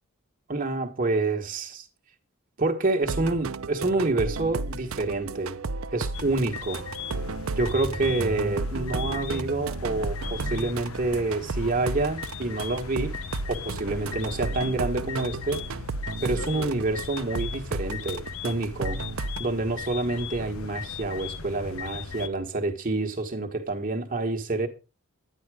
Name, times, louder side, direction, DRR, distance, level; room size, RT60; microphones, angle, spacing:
voice 1, 0.5-1.9 2.6-5.6 5.9-6.8 7.5-13.2 13.5-15.6 16.2-19.0 19.4-24.7, right 2 dB, 40° right, 1.4 m, -28 dB
sound 1, 3.0-19.4, right 3 dB, 75° right, 0.7 m, -33 dB
sound 2, 6.1-22.3, left 6 dB, 80° left, 0.9 m, -38 dB
10.5 x 10.0 x 4.8 m
head